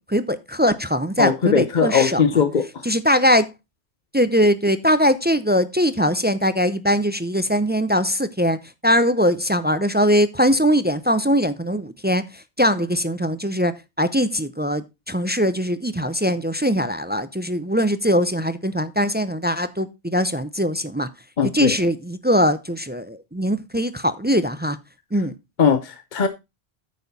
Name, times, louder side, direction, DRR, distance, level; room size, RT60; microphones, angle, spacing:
voice 1, 0.0-2.2 2.8-3.5 4.1-8.6 8.8-21.1 21.5-24.8 25.1-25.4, equal, 15° right, 0.4 m, -21 dB
voice 2, 1.2-2.9 21.4-21.8 25.6-26.3, left 6 dB, 50° left, 0.9 m, -20 dB
9.3 x 7.0 x 4.0 m
omnidirectional pair, 1.1 m